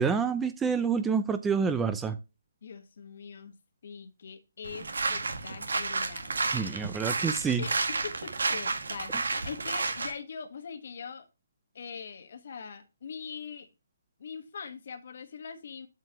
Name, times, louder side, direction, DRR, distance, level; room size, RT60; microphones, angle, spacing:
voice 1, 0.0-2.2 6.4-7.7, right 6 dB, 10° right, 0.5 m, -28 dB
voice 2, 2.6-3.6 3.8-6.8 7.6-11.3 11.7-13.7 14.2-15.9, left 6 dB, 55° left, 1.3 m, -42 dB
sound 1, 4.6-10.1, right 3 dB, 80° right, 1.9 m, -31 dB
7.5 x 7.4 x 2.9 m
hypercardioid pair, 160°, 0 cm